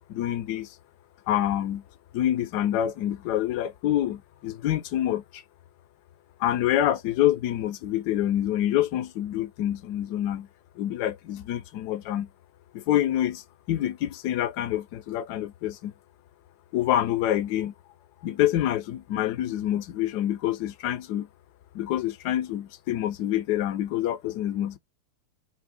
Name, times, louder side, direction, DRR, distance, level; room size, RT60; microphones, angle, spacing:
voice 1, 0.1-0.7 1.3-1.8 2.1-5.4 6.4-10.5 10.8-12.3 12.7-13.4 13.7-15.9 16.7-17.7 18.2-21.3 21.7-24.8, left 12 dB, 45° left, 0.4 m, -26 dB
2.6 x 2.0 x 2.6 m
figure-of-eight pair, 90°, 0 cm